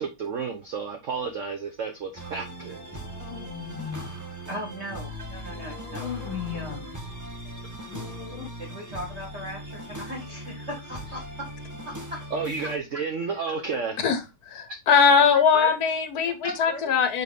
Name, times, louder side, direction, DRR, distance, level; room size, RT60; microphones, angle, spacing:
voice 1, 0.0-2.9 7.7-7.8 12.3-14.0, right 5 dB, 55° right, 0.8 m, -31 dB
sound 1, 2.2-12.8, right 1 dB, 15° right, 0.8 m, -39 dB
sound 2, 2.6-4.2 5.5-7.0 7.9-8.5, left 9 dB, 75° left, 1.4 m, -38 dB
voice 2, 4.5-7.0 8.6-11.5 11.8-12.2 12.6-12.7 15.1-15.8 16.2-16.9, equal, 35° right, 1.6 m, -37 dB
voice 3, 14.5-17.2, left 6 dB, 55° left, 1.2 m, -21 dB
7.4 x 4.0 x 3.7 m
omnidirectional pair, 2.3 m